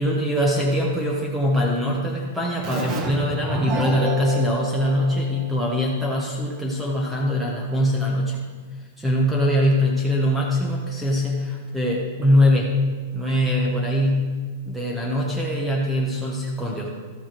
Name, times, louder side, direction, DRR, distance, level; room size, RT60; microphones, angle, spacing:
voice 1, 0.0-8.4 9.0-12.8 13.1-14.3 14.6-16.9, left 1 dB, 5° right, -2 dB, 0.9 m, -22 dB
Keyboard (musical), 2.6-6.0, right 2 dB, 25° right, 1.2 m, -29 dB
13.0 x 7.1 x 4.5 m, 1.5 s
supercardioid pair, 165°, 0 cm